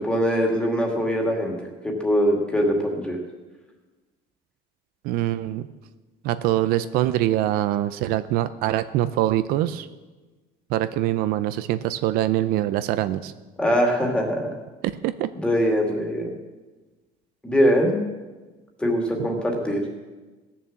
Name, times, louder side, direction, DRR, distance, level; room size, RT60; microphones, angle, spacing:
voice 1, 0.0-1.5 1.8-3.2 13.6-14.5 15.4-16.3 17.4-18.0 18.8-19.8, equal, 5° left, 0 dB, 2.2 m, -22 dB
voice 2, 5.0-5.7 6.2-9.9 10.7-13.3 15.0-15.3 19.2-19.3, right 13 dB, 70° right, 13 dB, 0.6 m, -24 dB
17.5 x 7.2 x 7.2 m, 1.2 s
cardioid pair, 165°, 16 cm